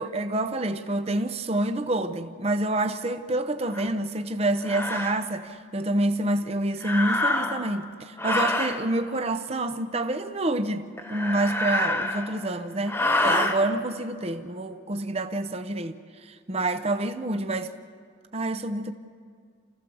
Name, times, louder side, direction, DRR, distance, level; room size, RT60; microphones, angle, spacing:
voice 1, 0.0-16.0 16.5-17.7 18.3-18.9, right 2 dB, 30° right, 0.8 m, -27 dB
sound 1, 3.7-3.9 4.6-5.2 6.8-7.7 8.2-8.8 11.0-12.4 12.9-13.6, left 2 dB, 10° left, 1.4 m, -26 dB
28.5 x 15.5 x 7.1 m
head